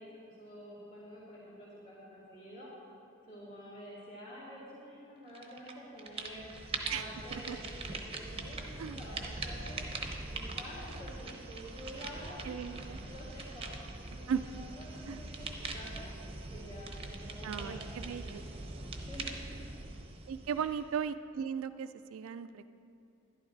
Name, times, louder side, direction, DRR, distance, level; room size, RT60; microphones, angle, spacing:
voice 1, 0.0-2.7 3.3-6.4 6.8-9.8 10.3-12.8 13.0-13.7 14.0-14.5 14.8-16.1 16.5-18.3 19.1-19.6 20.5-20.7, equal, 35° left, -10 dB, 2.4 m, -49 dB
sound 1, 5.3-5.7 6.0-21.0, right 3 dB, 25° right, 0.8 m, -42 dB
voice 2, 12.4-13.0 14.3-14.4 15.1-15.2 17.4-18.4 20.3-22.7, right 7 dB, 75° right, 11 dB, 0.3 m, -37 dB
12.0 x 11.0 x 3.9 m, 2.7 s
head